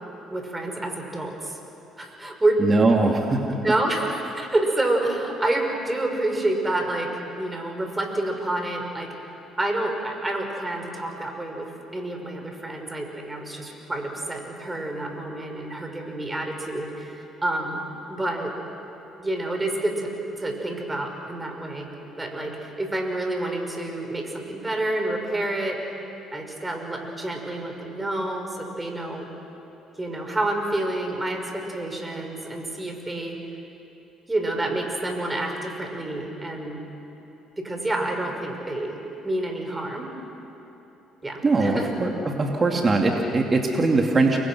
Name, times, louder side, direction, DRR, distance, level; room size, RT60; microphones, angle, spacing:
voice 1, 0.3-1.6 2.0-2.6 3.6-9.1 9.6-17.8 18.1-18.5 19.2-21.9 22.2-25.8 26.3-29.3 30.0-33.4 34.3-36.8 37.6-39.0 39.2-40.1 41.2-41.9, right 1 dB, 15° right, 3 dB, 5.5 m, -28 dB
voice 2, 2.6-3.7 41.4-44.4, right 3 dB, 35° right, 1 dB, 2.5 m, -21 dB
30.0 x 23.5 x 6.3 m, 3.0 s
supercardioid pair, 70°, 0 cm